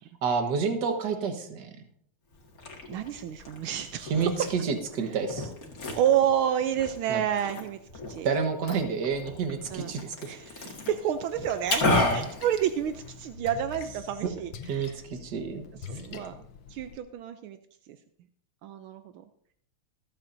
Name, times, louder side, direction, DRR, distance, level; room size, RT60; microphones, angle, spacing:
voice 1, 0.2-1.7 4.1-5.5 7.1-7.2 8.2-10.4 12.0-12.2 14.2-14.3 14.7-15.6 16.1-16.2, right 5 dB, 55° right, 6 dB, 1.8 m, -29 dB
Liquid, 2.3-13.3, left 2 dB, 45° left, 2.3 m, -34 dB
voice 2, 2.9-4.3 6.0-7.8 8.1-8.3 9.7-9.9 10.2-15.0 15.9-16.4 16.7-17.6 17.9-18.0 18.6-19.2, right 10 dB, 80° right, 9 dB, 1.5 m, -29 dB
Splash splatter, 11.7-17.0, left 6 dB, 65° left, 1.6 m, -45 dB
25.5 x 8.7 x 2.7 m, 0.67 s
omnidirectional pair, 2.3 m